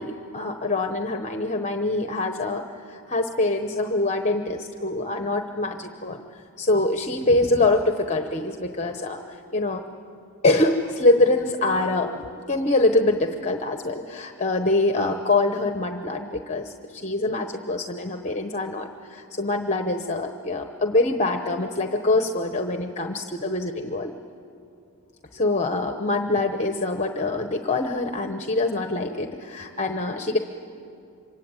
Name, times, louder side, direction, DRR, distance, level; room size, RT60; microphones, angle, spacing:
voice 1, 0.0-6.2 6.6-9.8 10.4-24.1 25.3-30.4, left 2 dB, 30° left, 6 dB, 1.0 m, -24 dB
26.0 x 24.0 x 8.9 m, 2.6 s
head